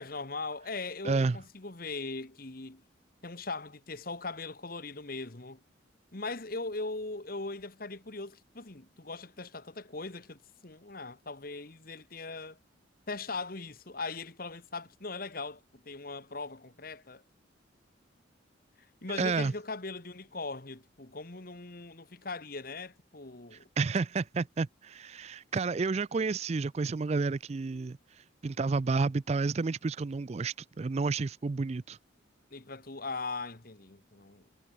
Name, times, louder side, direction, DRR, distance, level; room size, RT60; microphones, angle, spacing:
voice 1, 0.0-2.8 3.2-5.6 6.1-12.6 13.1-17.2 19.0-23.7 32.5-34.5, left 3 dB, 45° left, 1.6 m, -40 dB
voice 2, 1.0-1.4 19.2-19.5 23.8-28.0 28.4-32.0, right 4 dB, 30° right, 0.4 m, -30 dB
head